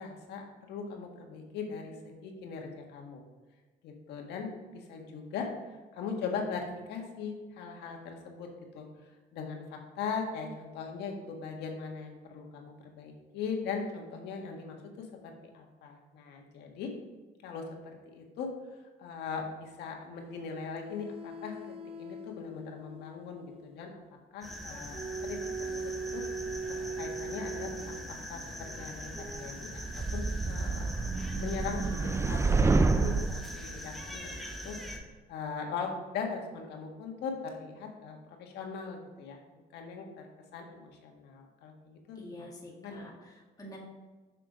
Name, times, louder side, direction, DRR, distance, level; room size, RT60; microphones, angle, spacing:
voice 1, 0.0-3.2 3.8-5.5 5.9-8.5 8.7-8.9 9.3-16.9 17.4-18.5 19.0-21.5 22.0-24.0 24.3-25.0 25.3-25.4 25.8-26.2 27.0-28.0 28.3-30.9 31.1-34.8 35.3-39.4 39.7-40.3 40.5-42.5 42.7-43.0, left 5 dB, 80° left, 2 dB, 1.6 m, -40 dB
sound 1, 20.3-23.8 24.9-28.0 29.1-29.5, right 3 dB, 35° right, 0.9 m, -40 dB
sound 2, 24.4-35.0, equal, ahead, 1.3 m, -42 dB
sound 3, 29.8-33.4, right 3 dB, 15° right, 0.4 m, -28 dB
voice 2, 42.2-43.8, left 1 dB, 20° left, -3 dB, 2.0 m, -47 dB
6.5 x 6.5 x 5.0 m, 1.3 s
cardioid pair, 110°, 17 cm